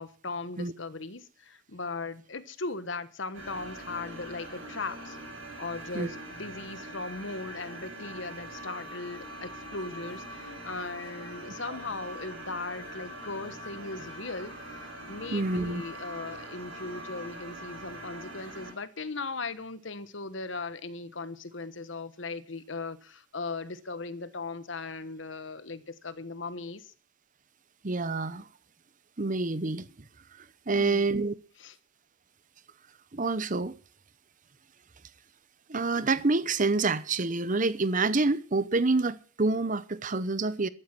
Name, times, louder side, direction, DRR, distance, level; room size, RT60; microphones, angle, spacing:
voice 1, 0.0-5.2 5.6-14.5 14.8-26.9 30.7-31.1 31.6-31.7, left 3 dB, 65° left, 1.3 m, -38 dB
sound 1, 3.3-18.7, right 1 dB, 90° right, 7.8 m, -43 dB
voice 2, 15.3-15.8 27.8-28.5 29.2-30.1 30.4-31.3 33.1-33.8 35.7-40.7, right 3 dB, 40° right, 0.9 m, -27 dB
14.0 x 12.0 x 6.1 m
head